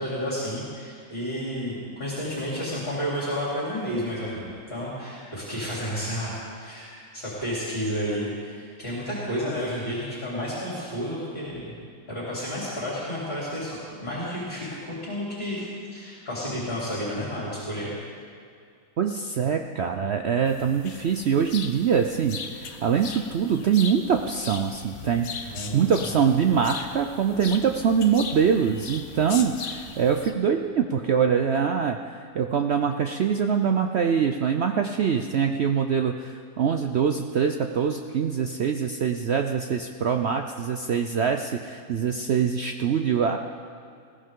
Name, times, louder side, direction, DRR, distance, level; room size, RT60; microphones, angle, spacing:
voice 1, 0.0-11.7 12.1-15.7 15.9-17.9 25.5-25.9, equal, 35° left, -7 dB, 3.7 m, -31 dB
voice 2, 19.0-43.4, right 7 dB, 65° right, 5 dB, 0.6 m, -24 dB
sound 1, 20.4-30.3, left 5 dB, 55° left, 1.1 m, -39 dB
20.5 x 15.5 x 3.7 m, 2.3 s
omnidirectional pair, 1.8 m